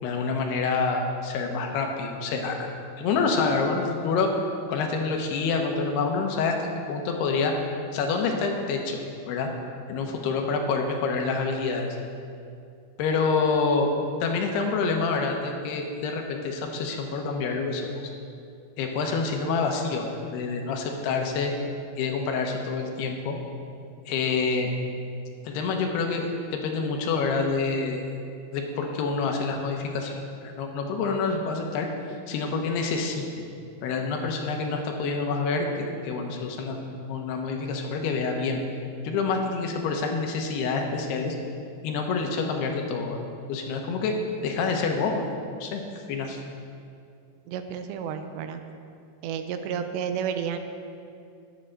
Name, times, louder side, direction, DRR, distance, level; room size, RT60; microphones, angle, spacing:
voice 1, 0.0-2.7 3.0-4.3 4.7-7.5 7.9-9.0 9.3-9.5 9.9-11.9 13.0-13.9 14.2-17.9 18.8-21.5 21.9-23.4 24.1-24.7 25.4-26.2 26.5-28.0 28.5-30.2 30.4-31.9 32.3-33.3 33.8-38.6 39.0-41.4 41.8-43.2 43.5-44.1 44.4-45.3 45.6-45.8 46.1-46.4, left 4 dB, 80° left, 2 dB, 2.9 m, -27 dB
voice 2, 47.5-48.6 49.2-50.6, right 7 dB, 90° right, 7 dB, 2.8 m, -31 dB
10.0 x 8.6 x 6.5 m, 2.5 s
omnidirectional pair, 5.0 m